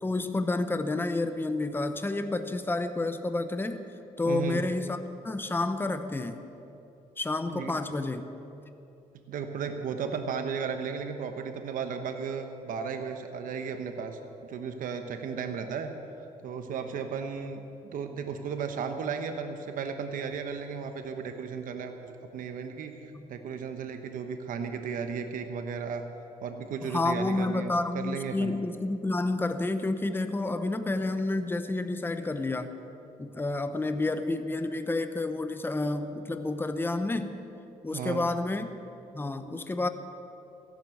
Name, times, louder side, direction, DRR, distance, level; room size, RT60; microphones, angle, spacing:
voice 1, 0.0-3.8 4.2-6.5 7.2-8.3 23.1-23.3 26.8-32.8 33.2-37.4 37.8-38.7 39.1-39.9, left 2 dB, 15° left, 9 dB, 0.9 m, -30 dB
voice 2, 4.3-4.6 7.5-7.7 9.3-15.9 16.4-22.9 23.3-26.0 26.4-28.6 37.9-38.2, right 6 dB, 75° right, 6 dB, 1.1 m, -35 dB
15.5 x 11.5 x 7.8 m, 2.9 s
cardioid pair, 100°, 14 cm